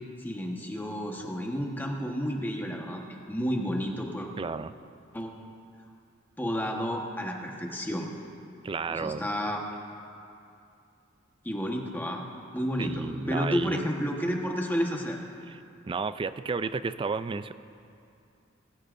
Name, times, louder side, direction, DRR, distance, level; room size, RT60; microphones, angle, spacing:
voice 1, 0.2-4.3 5.1-5.3 6.4-8.1 8.9-9.6 11.4-12.2 12.5-15.2, equal, 10° left, 0 dB, 1.3 m, -31 dB
voice 2, 4.4-4.7 8.6-9.2 12.8-13.8 15.5-15.6 15.9-17.5, right 4 dB, 25° right, 13 dB, 0.3 m, -32 dB
20.5 x 16.5 x 2.6 m, 2.6 s
head